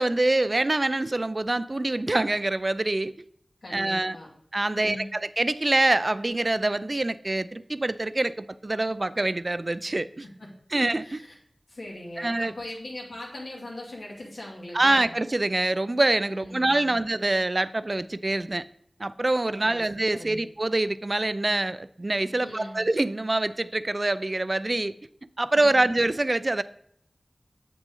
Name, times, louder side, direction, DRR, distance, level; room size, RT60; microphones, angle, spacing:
voice 1, 0.0-3.1 3.7-4.2 4.5-10.2 10.7-11.2 12.2-12.5 14.7-18.6 19.0-24.9 25.4-26.6, right 2 dB, 40° right, 15 dB, 0.4 m, -25 dB
voice 2, 3.6-4.3 4.7-5.1 10.2-10.5 11.0-11.3 11.7-15.1 16.3-17.0 19.5-19.9 20.1-20.4 22.4-22.8 25.5-25.9, left 1 dB, 90° left, -4 dB, 2.4 m, -40 dB
7.8 x 6.0 x 3.8 m, 0.67 s
wide cardioid pair, 60°, 0 cm